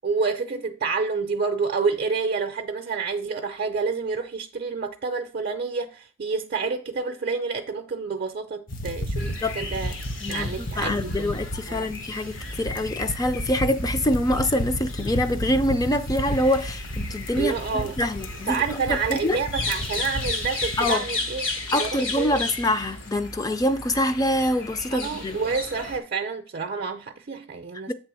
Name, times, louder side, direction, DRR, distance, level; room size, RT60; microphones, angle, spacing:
voice 1, 0.0-9.9 10.3-11.4 11.7-11.9 17.4-17.9 18.5-21.5 21.8-22.3 24.9-27.9, right 4 dB, 50° right, 0.5 m, -28 dB
sound 1, 8.7-20.9, equal, 40° left, 0.9 m, -33 dB
sound 2, 9.2-26.0, left 3 dB, 70° left, 2.2 m, -35 dB
voice 2, 9.2-9.6 10.2-19.4 20.8-21.0 21.7-25.4 27.9-28.0, left 1 dB, 15° left, 0.4 m, -25 dB
8.0 x 3.4 x 6.1 m
head